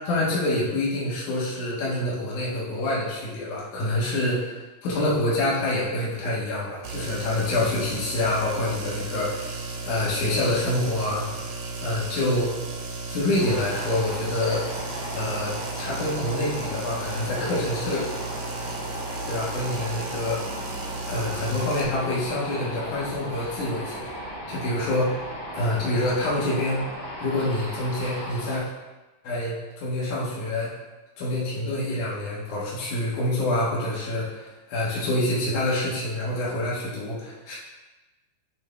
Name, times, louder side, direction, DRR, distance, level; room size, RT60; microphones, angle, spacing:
voice 1, 0.1-4.5 4.8-9.3 9.8-11.3 11.8-12.5 13.1-14.7 15.1-15.5 15.8-18.0 19.3-20.6 21.1-24.1 24.5-25.2 25.5-26.9 27.2-28.6 29.2-30.7 31.2-37.6, left 1 dB, 70° left, -7 dB, 2.7 m, -26 dB
sound 1, 6.8-21.8, right 3 dB, 80° right, 1.3 m, -35 dB
sound 2, 13.3-28.6, equal, 50° left, 1.8 m, -36 dB
8.9 x 3.7 x 3.2 m, 1.1 s
omnidirectional pair, 3.8 m